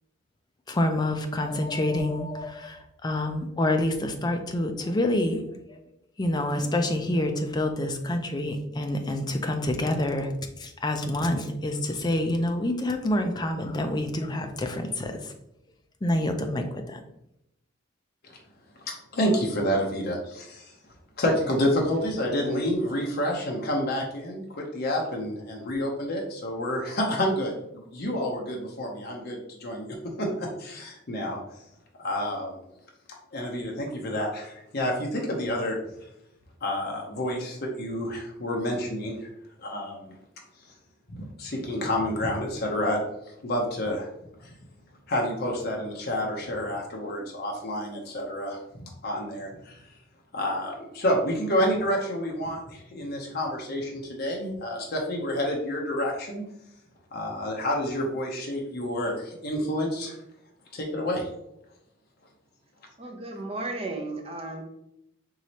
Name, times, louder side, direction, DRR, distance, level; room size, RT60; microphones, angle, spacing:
voice 1, 0.7-5.4 6.2-10.3 10.6-15.3 16.0-17.0, left 1 dB, 20° left, 5 dB, 0.4 m, -27 dB
voice 2, 19.1-20.7 21.2-29.9 30.2-31.4 32.0-32.6 33.3-35.8 36.6-39.2 39.6-40.1 41.1-43.0 43.4-44.1 44.4-44.5 45.1-49.8 50.3-56.4 57.1-60.2 60.7-61.3, equal, 55° left, 0 dB, 0.7 m, -29 dB
voice 3, 63.0-64.6, right 2 dB, 30° right, 2 dB, 0.7 m, -34 dB
4.7 x 3.1 x 2.8 m, 0.82 s
head